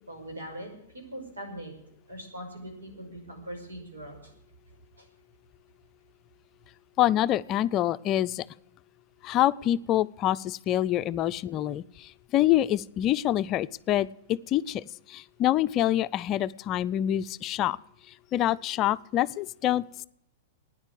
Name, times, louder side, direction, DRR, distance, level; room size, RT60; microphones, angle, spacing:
voice 1, 0.1-1.7 2.1-4.3 5.0-5.1, right 1 dB, 80° right, 2 dB, 5.5 m, -41 dB
voice 2, 7.0-8.4 9.2-17.8 18.3-19.8, left 13 dB, 35° left, 14 dB, 0.4 m, -26 dB
12.5 x 9.9 x 8.6 m, 0.76 s
figure-of-eight pair, 105°, 0 cm